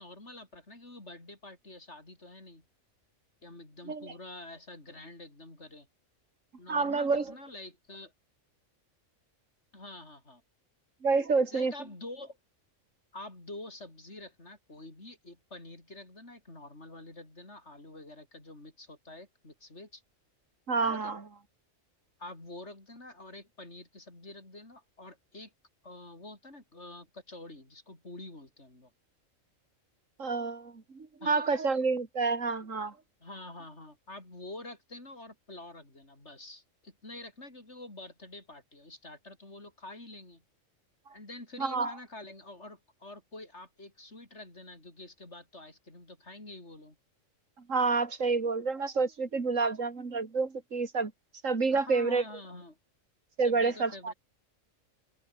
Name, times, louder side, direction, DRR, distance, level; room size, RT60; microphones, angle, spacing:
voice 1, 0.0-2.7 3.4-5.9 6.6-8.1 9.7-10.4 11.5-12.4 13.1-20.0 21.0-21.1 22.2-25.5 25.8-28.9 31.2-31.4 33.2-40.4 41.1-47.0 51.7-52.8 53.4-54.1, left 2 dB, 55° left, 5.7 m, -47 dB
voice 2, 6.7-7.3 11.0-11.7 20.7-21.3 30.2-32.9 41.6-41.9 47.7-51.1 51.4-52.2 53.4-54.1, right 4 dB, 75° right, 2.8 m, -28 dB
open air
omnidirectional pair, 1.4 m